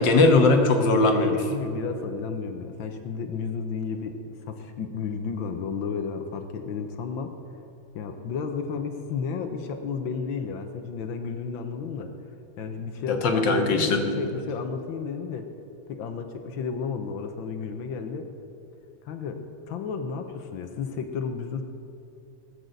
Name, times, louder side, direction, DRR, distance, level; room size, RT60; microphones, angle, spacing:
voice 1, 0.0-1.5 13.1-14.1, left 3 dB, 70° left, 4 dB, 1.9 m, -20 dB
voice 2, 1.5-7.6 7.9-12.1 12.6-15.5 15.9-18.3 19.0-21.6, left 5 dB, 85° left, 5 dB, 1.6 m, -32 dB
19.5 x 6.7 x 7.8 m, 2.7 s
omnidirectional pair, 2.1 m